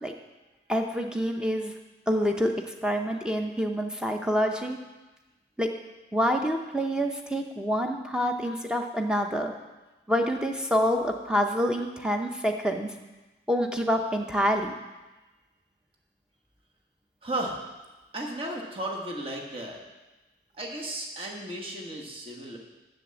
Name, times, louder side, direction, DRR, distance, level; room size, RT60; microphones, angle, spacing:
voice 1, 0.7-1.7 2.1-4.8 5.6-5.7 6.1-9.5 10.1-12.9 13.5-14.7, equal, 5° right, 3 dB, 0.7 m, -27 dB
voice 2, 17.2-17.6 18.1-19.8 20.5-22.6, right 1 dB, 30° right, -1 dB, 1.3 m, -34 dB
7.5 x 6.9 x 7.6 m, 1.1 s
head